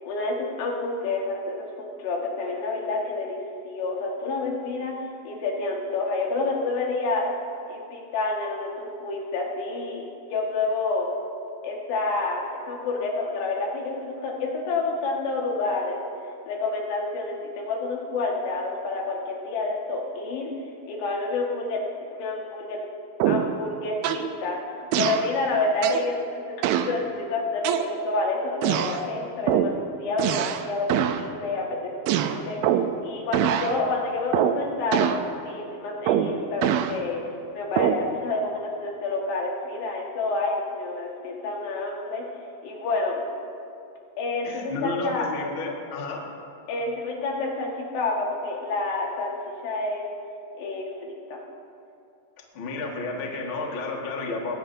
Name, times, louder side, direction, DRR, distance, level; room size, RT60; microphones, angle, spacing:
voice 1, 0.0-7.3 7.7-10.0 10.3-11.1 11.6-16.0 16.5-20.5 20.9-22.8 23.3-37.2 37.5-42.2 42.6-43.2 44.2-45.3 46.7-49.4 49.6-50.0 50.6-51.4, left 3 dB, 80° left, -2 dB, 3.9 m, -29 dB
sound 1, 23.2-23.6 24.0-24.3 24.9-25.3 25.8-26.1 26.6-27.0 27.6-28.2 28.6-29.0 29.5-29.8 30.2-30.6 30.9-31.2 32.1-33.0 33.3-33.7 34.3-34.6 34.9-35.3 36.1-36.9 37.8-38.1, right 10 dB, 85° right, 2.1 m, -24 dB
voice 2, 44.4-46.2 52.5-54.6, left 3 dB, 45° left, -1 dB, 1.7 m, -31 dB
21.5 x 16.0 x 2.7 m, 2.6 s
omnidirectional pair, 4.8 m